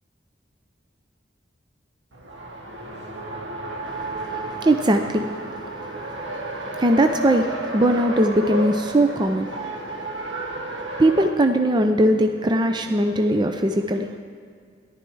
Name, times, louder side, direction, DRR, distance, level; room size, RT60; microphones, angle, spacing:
Race car auto racing, 2.1-11.3, right 2 dB, 75° right, 1.3 m, -32 dB
voice 1, 3.8-14.1, right 1 dB, 25° right, 5 dB, 0.5 m, -22 dB
14.5 x 11.5 x 4.7 m, 2.2 s
head